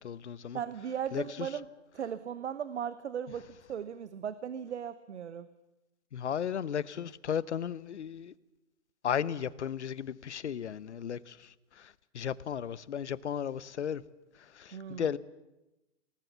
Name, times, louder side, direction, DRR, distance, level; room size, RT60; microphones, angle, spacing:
voice 1, 0.0-0.6 1.1-1.5 6.1-8.3 9.0-11.4 11.8-14.0 14.6-15.2, left 8 dB, 70° left, 0.9 m, -35 dB
voice 2, 0.5-1.7 1.9-5.5 14.7-15.1, right 8 dB, 65° right, 1.1 m, -37 dB
27.0 x 19.0 x 7.2 m
figure-of-eight pair, 110°, 36 cm